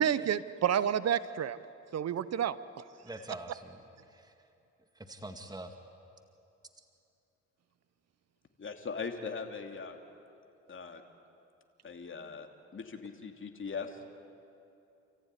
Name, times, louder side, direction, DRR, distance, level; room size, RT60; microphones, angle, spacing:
voice 1, 0.0-1.6 1.9-2.6, right 9 dB, 60° right, 16 dB, 0.9 m, -29 dB
voice 2, 3.0-3.8 4.1-4.3 4.9-5.7, right 2 dB, 15° right, 5 dB, 2.2 m, -45 dB
voice 3, 8.6-10.0 10.7-11.0 11.8-14.0, left 5 dB, 40° left, 4 dB, 2.9 m, -40 dB
29.0 x 15.0 x 10.0 m, 2.8 s
supercardioid pair, 65°, 30 cm